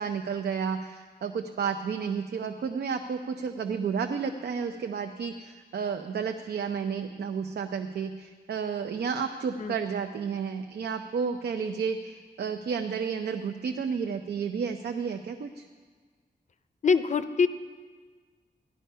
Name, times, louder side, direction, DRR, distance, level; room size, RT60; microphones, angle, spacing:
voice 1, 0.0-15.6, right 6 dB, 85° right, 6 dB, 0.7 m, -31 dB
voice 2, 16.8-17.5, left 5 dB, 45° left, 11 dB, 0.5 m, -24 dB
14.5 x 11.0 x 5.6 m, 1.5 s
wide cardioid pair, 180°, 17 cm